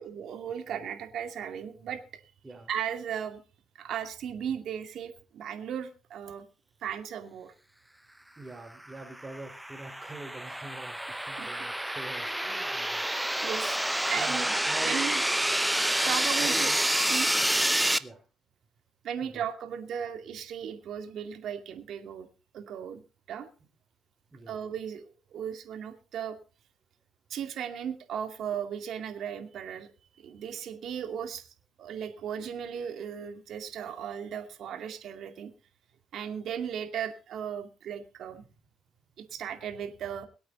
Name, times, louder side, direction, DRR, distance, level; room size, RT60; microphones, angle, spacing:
voice 1, 0.0-2.0 2.7-3.4 3.8-6.4 6.8-7.5 11.1-11.9 13.1-13.8 14.1-15.2 16.0-16.7 17.1-17.3 19.0-22.3 22.5-23.0 23.3-23.5 24.5-26.4 27.3-29.9 30.2-35.5 36.1-38.4 39.2-40.3, right 8 dB, 70° right, 7 dB, 2.4 m, -36 dB
voice 2, 8.4-13.0 14.2-15.1 16.0-16.8 17.4-17.6 18.0-18.2 19.2-19.4 24.3-24.6, right 2 dB, 20° right, -1 dB, 4.1 m, -44 dB
sound 1, 9.0-18.0, right 1 dB, 5° right, 0.8 m, -28 dB
23.5 x 8.7 x 4.0 m, 0.35 s
cardioid pair, 90°, 0 cm